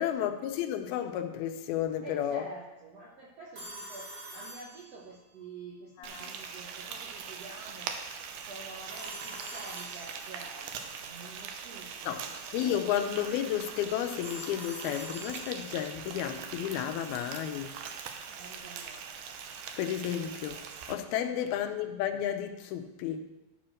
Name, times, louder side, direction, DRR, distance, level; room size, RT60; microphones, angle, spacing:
voice 1, 0.0-2.5 6.0-6.3 12.1-12.2 12.5-17.7 19.8-20.6 20.9-23.2, left 10 dB, 80° left, 7 dB, 2.6 m, -32 dB
voice 2, 2.0-8.0 8.5-12.8 18.3-19.0 21.2-21.6, right 3 dB, 70° right, -2 dB, 1.5 m, -48 dB
Telephone, 3.5-5.3 8.9-10.6 14.2-15.9, equal, 35° right, 2.0 m, -45 dB
Frying (food), 6.0-20.9, right 6 dB, 85° right, 1.7 m, -42 dB
13.0 x 4.5 x 6.3 m, 1.1 s
omnidirectional pair, 4.5 m